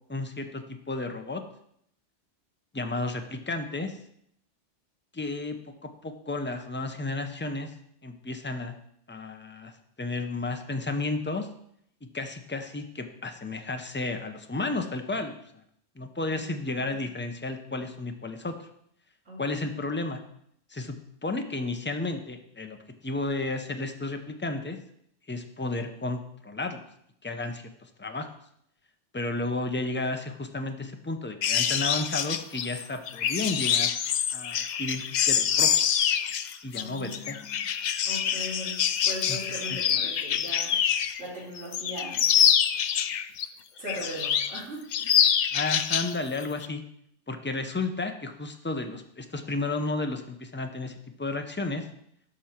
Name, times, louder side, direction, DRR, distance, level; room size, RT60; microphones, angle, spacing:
voice 1, 0.1-1.4 2.7-4.0 5.1-7.7 8.0-8.7 9.1-9.7 10.0-11.5 12.1-15.3 16.0-18.7 19.4-20.2 20.7-22.8 23.0-24.8 25.3-26.8 27.2-28.3 29.1-33.9 34.3-35.7 36.6-37.4 39.3-39.4 39.7-39.8 45.5-46.8 47.3-51.8, left 2 dB, 10° left, 6 dB, 0.6 m, -32 dB
voice 2, 19.3-19.8 36.7-37.6 38.1-40.7 41.2-42.2 43.8-45.3, equal, 90° right, -7 dB, 3.7 m, -39 dB
sound 1, 31.4-41.2 41.6-43.5 43.9-44.6 44.9-46.1 46.4-46.7, left 9 dB, 60° left, 0.4 m, -26 dB
12.5 x 5.4 x 4.4 m, 0.70 s
omnidirectional pair, 1.2 m